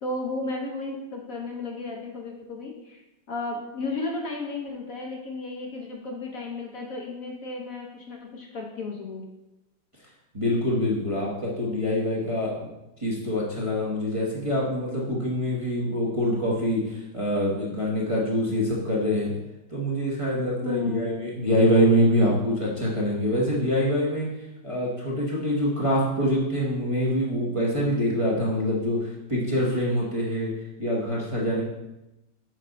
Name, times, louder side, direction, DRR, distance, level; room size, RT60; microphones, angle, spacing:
voice 1, 0.0-3.0 3.3-9.2 20.6-21.3, left 3 dB, 55° left, 0 dB, 1.2 m, -33 dB
voice 2, 10.3-12.7 13.0-19.3 19.7-24.3 24.6-30.5 30.8-31.6, equal, 20° right, -5 dB, 1.1 m, -25 dB
6.4 x 5.7 x 4.0 m, 0.95 s
omnidirectional pair, 1.9 m